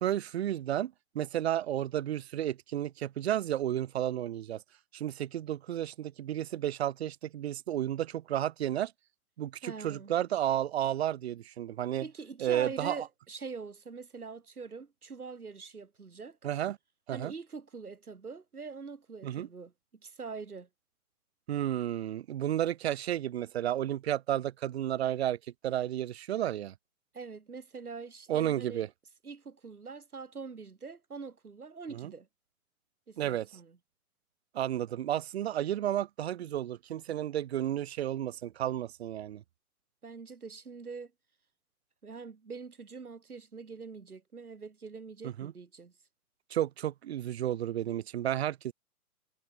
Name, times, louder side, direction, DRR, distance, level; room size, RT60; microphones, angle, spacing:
voice 1, 0.0-4.6 4.9-8.9 9.4-12.1 12.4-13.0 16.4-16.8 17.1-17.3 19.2-19.5 21.5-25.4 25.6-26.7 28.3-28.9 31.9-32.1 33.2-33.5 34.5-39.4 45.2-45.5 46.5-48.7, right 11 dB, 45° right, 0.7 m, -32 dB
voice 2, 9.6-10.1 12.0-16.4 17.1-19.7 20.0-20.7 27.1-28.9 29.2-32.3 33.1-33.8 40.0-41.1 42.0-45.9, right 5 dB, 75° right, 3.7 m, -44 dB
figure-of-eight pair, 125°, 44 cm